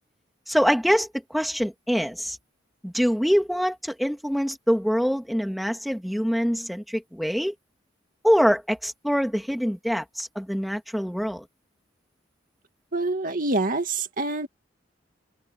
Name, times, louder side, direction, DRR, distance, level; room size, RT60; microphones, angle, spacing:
voice 1, 0.5-2.4 2.8-7.5 8.2-11.4, equal, ahead, 2.0 m, -24 dB
voice 2, 12.9-14.5, right 2 dB, 50° right, 2.3 m, -26 dB
head